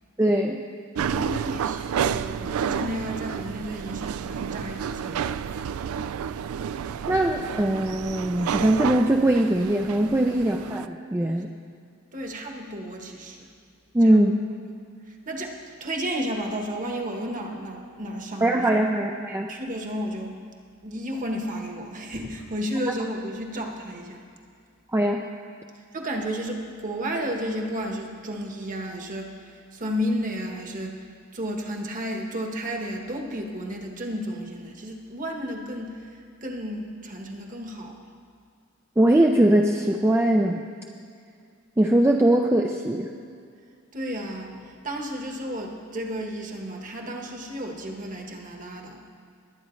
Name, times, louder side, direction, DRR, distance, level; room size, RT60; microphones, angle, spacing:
voice 1, 0.2-0.6 7.1-11.5 13.9-14.3 18.4-19.5 24.9-25.2 39.0-40.6 41.8-43.1, right 1 dB, 10° right, 1 dB, 0.4 m, -21 dB
sound 1, 1.0-10.9, right 7 dB, 80° right, 0.3 m, -30 dB
voice 2, 1.1-5.4 11.4-11.5 12.1-13.5 14.0-14.2 15.1-18.7 19.5-20.3 20.8-24.2 25.9-31.1 31.3-38.0 43.9-49.1, equal, 40° right, 2 dB, 1.2 m, -32 dB
21.5 x 9.1 x 3.2 m, 2.2 s
head